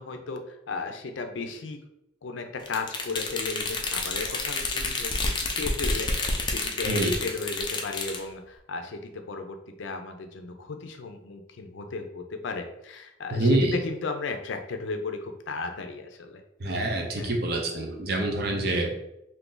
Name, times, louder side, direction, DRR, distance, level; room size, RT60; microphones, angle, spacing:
voice 1, 0.0-1.8 2.2-16.4 17.2-17.4, left 4 dB, 85° left, 6 dB, 0.5 m, -35 dB
sound 1, 2.7-8.2, left 3 dB, 25° left, 0.4 m, -29 dB
voice 2, 13.3-13.8 16.6-18.9, right 1 dB, 55° right, 2 dB, 0.6 m, -26 dB
2.6 x 2.5 x 3.7 m, 0.84 s
head